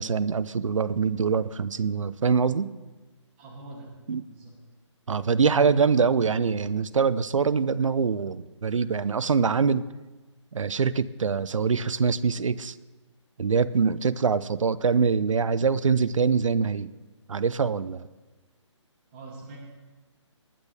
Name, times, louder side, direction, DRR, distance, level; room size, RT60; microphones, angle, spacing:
voice 1, 0.0-2.7 4.1-4.2 5.1-9.8 10.5-12.7 13.4-16.9 17.3-18.1, right 5 dB, 85° right, 17 dB, 0.6 m, -24 dB
voice 2, 3.4-3.9 4.3-4.5 19.1-19.6, right 2 dB, 25° right, -1 dB, 2.6 m, -43 dB
19.5 x 10.0 x 3.5 m, 1.2 s
hypercardioid pair, 160°, 16 cm